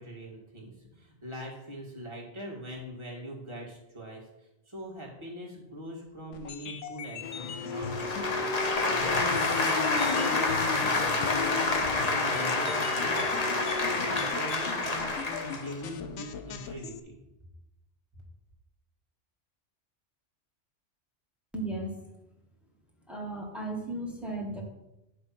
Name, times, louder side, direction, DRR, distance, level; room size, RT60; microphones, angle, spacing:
voice 1, 0.0-4.2 4.7-8.5 8.9-11.7 12.0-13.4 13.8-17.2, equal, 25° right, -4 dB, 2.2 m, -42 dB
sound 1, 6.3-17.0, left 7 dB, 75° left, 1.0 m, -42 dB
sound 2, 7.2-14.3, left 5 dB, 55° left, 0.6 m, -35 dB
sound 3, 7.7-15.8, left 3 dB, 35° left, 0.9 m, -28 dB
voice 2, 21.5-22.0 23.1-24.6, right 2 dB, ahead, -1 dB, 1.5 m, -35 dB
10.0 x 3.4 x 5.9 m, 0.91 s
omnidirectional pair, 1.2 m